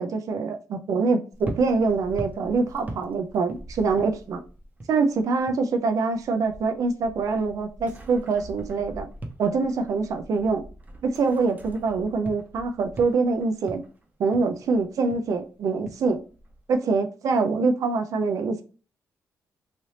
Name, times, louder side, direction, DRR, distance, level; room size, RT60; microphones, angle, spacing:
voice 1, 0.0-4.4 4.9-9.1 9.4-10.6 11.0-13.8 14.2-16.2 16.7-18.6, right 4 dB, 65° right, 0.5 m, -24 dB
sound 1, 1.3-5.7 6.0-16.7, right 1 dB, 25° right, 0.8 m, -42 dB
3.2 x 2.6 x 2.8 m
cardioid pair, 80°, 6 cm